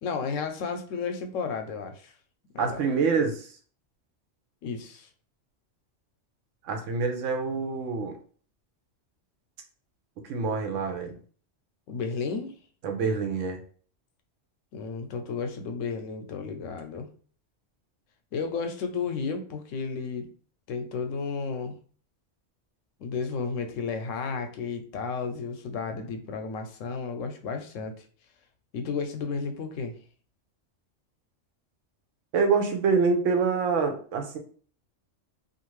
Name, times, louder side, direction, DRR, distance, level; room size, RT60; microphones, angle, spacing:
voice 1, 0.0-2.1 2.5-2.8 4.6-5.1 11.9-12.6 14.7-17.1 18.3-20.3 20.7-21.7 23.0-27.9 28.7-30.0, left 5 dB, 85° left, 7 dB, 0.9 m, -33 dB
voice 2, 2.6-3.5 6.6-8.2 10.3-11.1 12.8-13.6 32.3-34.4, right 4 dB, 85° right, 4 dB, 1.0 m, -26 dB
2.5 x 2.5 x 3.0 m, 0.43 s
omnidirectional pair, 1.3 m